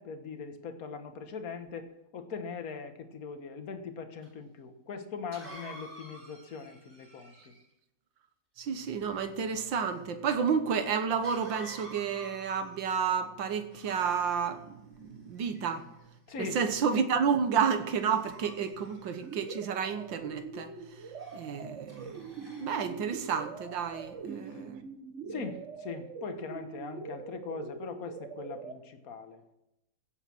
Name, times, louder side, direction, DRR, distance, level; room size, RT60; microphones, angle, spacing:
voice 1, 0.0-1.9 2.1-7.5 16.3-16.8 24.3-24.6 25.3-29.4, left 5 dB, 50° left, 1.6 m, -41 dB
Cough, 4.2-4.3 5.3-7.7 11.2-13.0 13.7-14.6 15.4-16.0 16.6-16.9 17.9-19.6 21.2-21.4 21.9-22.8, right 1 dB, 15° right, 4.0 m, -50 dB
voice 2, 8.6-15.8 16.4-20.7 21.3-24.9 25.3-25.4, right 6 dB, 75° right, 1.9 m, -31 dB
sound 1, 19.2-28.8, right 5 dB, 45° right, 1.2 m, -43 dB
16.0 x 8.1 x 6.2 m
omnidirectional pair, 2.1 m